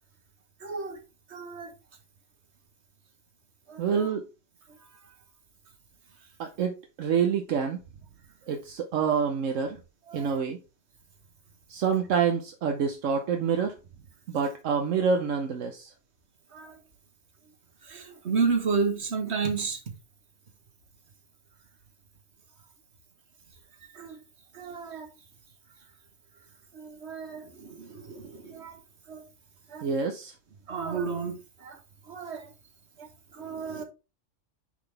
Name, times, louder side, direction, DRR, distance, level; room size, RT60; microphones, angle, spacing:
voice 1, 0.6-1.0 1.3-1.7 3.7-4.1 10.1-10.4 16.5-16.8 17.8-19.8 23.9-24.2 24.5-25.1 26.7-28.8 29.1-29.2 29.7-29.8 30.7-31.8 32.1-32.5 33.0-33.1 33.3-33.8, right 5 dB, 60° right, 1.6 m, -32 dB
voice 2, 3.8-4.2 6.4-7.8 8.5-9.8 10.1-10.6 11.7-13.8 14.3-15.9 29.8-30.3, right 6 dB, 80° right, 1.2 m, -27 dB
9.7 x 3.9 x 3.4 m
omnidirectional pair, 1.3 m